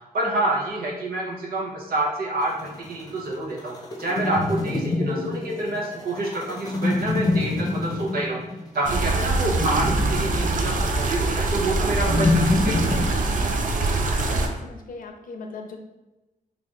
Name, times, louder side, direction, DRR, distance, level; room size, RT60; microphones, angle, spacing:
voice 1, 0.1-8.4 8.7-13.0, right 2 dB, 75° right, -2 dB, 0.8 m, -27 dB
sound 1, 2.4-13.1, left 2 dB, 25° left, 0.6 m, -27 dB
sound 2, 8.9-14.5, right 3 dB, 60° right, 0.5 m, -24 dB
voice 2, 14.1-15.8, left 4 dB, 65° left, 4 dB, 0.5 m, -39 dB
3.3 x 2.4 x 3.7 m, 1.0 s
wide cardioid pair, 130°, 15 cm